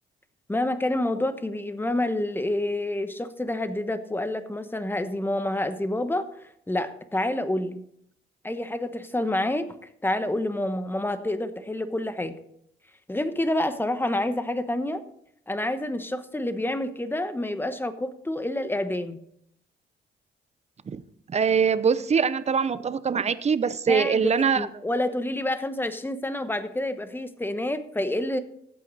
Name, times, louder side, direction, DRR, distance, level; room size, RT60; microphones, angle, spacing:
voice 1, 0.5-6.3 6.7-7.8 8.4-9.7 10.0-12.3 13.1-15.0 15.5-19.2 23.9-24.3 24.5-28.4, left 1 dB, 10° left, 10 dB, 1.1 m, -28 dB
voice 2, 21.3-24.7, right 6 dB, 35° right, 15 dB, 0.7 m, -23 dB
14.5 x 8.6 x 4.1 m, 0.73 s
cardioid pair, 90°, 20 cm